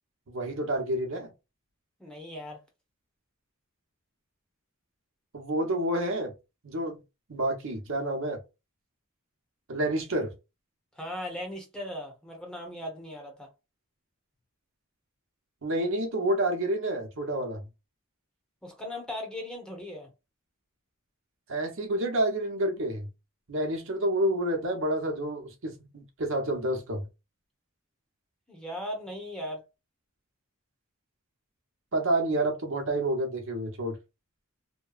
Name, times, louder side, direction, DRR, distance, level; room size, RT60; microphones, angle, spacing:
voice 1, 0.3-1.3 5.3-6.3 6.6-7.0 7.3-8.4 9.7-10.3 15.6-17.7 21.5-23.1 23.5-27.1 31.9-34.0, right 1 dB, 65° right, 0.8 m, -29 dB
voice 2, 2.0-2.6 11.0-13.5 18.6-20.1 28.5-29.6, left 1 dB, 5° left, 0.9 m, -38 dB
2.9 x 2.2 x 2.3 m
head